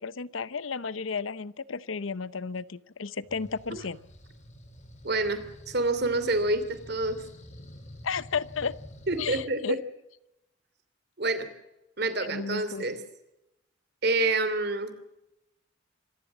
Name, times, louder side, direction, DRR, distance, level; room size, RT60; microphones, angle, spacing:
voice 1, 0.0-4.0 8.0-8.8 9.2-9.8 12.2-12.9, left 5 dB, 85° left, 17 dB, 0.8 m, -33 dB
sound 1, 3.2-9.4, equal, 35° left, 3.1 m, -48 dB
voice 2, 5.0-7.2 9.1-9.8 11.2-11.5 12.0-13.0 14.0-14.9, right 2 dB, 55° right, 11 dB, 2.8 m, -27 dB
26.0 x 15.5 x 7.4 m, 0.90 s
head